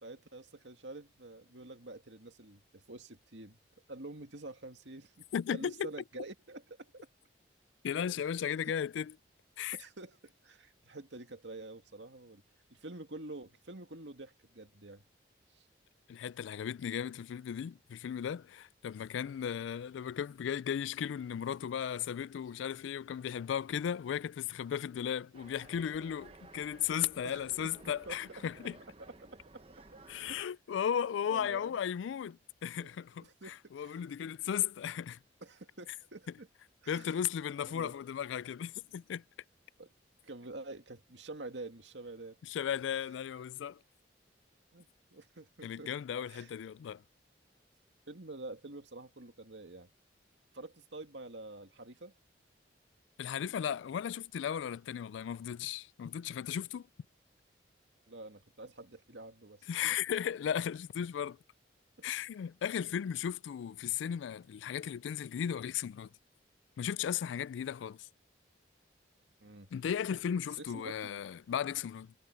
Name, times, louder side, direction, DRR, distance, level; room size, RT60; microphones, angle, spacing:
voice 1, 0.0-3.6 3.9-7.1 9.7-12.4 12.7-15.0 15.5-15.7 27.2-28.2 28.6-28.7 29.0-30.4 31.3-31.8 32.8-32.9 33.2-34.0 35.4-36.5 36.8-37.1 37.7-37.9 39.8-39.9 40.2-42.4 44.7-45.9 46.3-46.5 48.1-49.9 50.5-52.1 58.1-59.7 62.0-62.3 69.4-69.7 70.6-71.1, right 2 dB, 80° right, 2.2 m, -48 dB
voice 2, 5.3-5.9 7.8-9.1 9.6-9.8 16.1-28.8 30.1-33.3 33.7-35.2 36.9-39.2 42.4-43.8 45.6-47.0 53.2-56.9 59.7-61.4 62.0-66.1 66.8-68.1 69.7-72.1, left 8 dB, 85° left, 0.3 m, -36 dB
sound 1, 25.3-30.4, right 2 dB, 30° right, 1.0 m, -56 dB
head